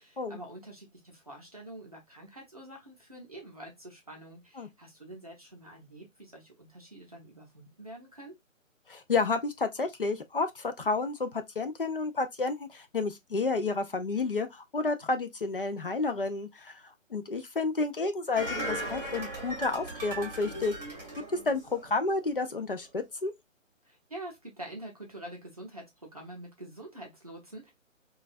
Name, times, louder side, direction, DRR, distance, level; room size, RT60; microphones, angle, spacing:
voice 1, 0.0-8.3 23.8-27.7, right 1 dB, 30° right, 0.6 m, -46 dB
voice 2, 8.9-20.7 21.3-23.3, left 3 dB, 45° left, 0.4 m, -31 dB
sound 1, 18.3-22.1 22.5-22.6, right 1 dB, 10° right, 0.9 m, -37 dB
3.1 x 2.3 x 2.4 m
hypercardioid pair, 170°, 40 cm